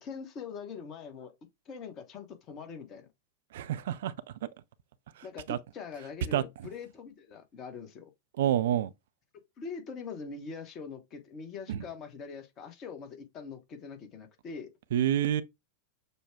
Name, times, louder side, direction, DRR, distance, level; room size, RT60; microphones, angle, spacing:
voice 1, 0.0-1.3 1.6-3.1 5.2-8.1 9.3-14.7, left 5 dB, 35° left, 1.1 m, -43 dB
voice 2, 3.5-4.1 4.4-4.5 5.2-5.6 6.3-6.4 8.4-8.9 11.7-11.8 14.9-15.4, right 11 dB, 55° right, 0.4 m, -28 dB
6.7 x 2.3 x 3.4 m
figure-of-eight pair, 90°, 0 cm